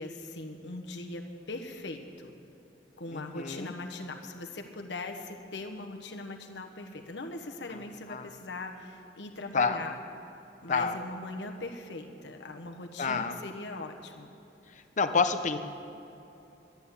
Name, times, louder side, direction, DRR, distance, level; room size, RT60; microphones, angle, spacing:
voice 1, 0.0-2.3 3.0-10.0 10.6-14.3, left 2 dB, 80° left, 3 dB, 1.1 m, -40 dB
voice 2, 3.1-3.7 8.1-8.3 9.5-9.9 10.7-11.0 13.0-13.4 14.7-15.6, left 4 dB, 45° left, 9 dB, 0.7 m, -28 dB
12.0 x 9.7 x 8.4 m, 3.0 s
head